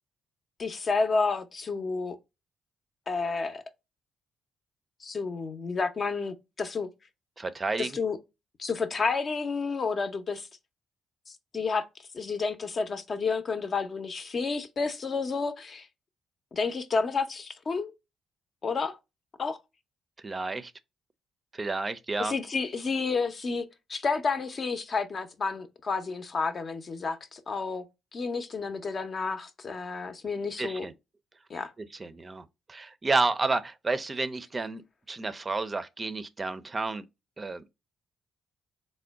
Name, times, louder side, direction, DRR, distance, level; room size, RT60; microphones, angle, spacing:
voice 1, 0.6-2.2 3.1-3.6 5.0-6.9 7.8-8.2 8.6-10.5 11.3-11.8 12.1-15.9 16.5-17.9 18.6-19.0 19.4-19.6 22.2-23.6 23.9-27.8 28.1-30.9 31.5-31.7, left 4 dB, 45° left, 0.6 m, -30 dB
voice 2, 7.4-7.9 20.2-20.7 21.5-22.3 30.6-30.9 31.8-34.8 35.1-37.0 37.4-37.6, right 3 dB, 30° right, 0.4 m, -31 dB
3.7 x 2.1 x 3.4 m
supercardioid pair, 70°, 0 cm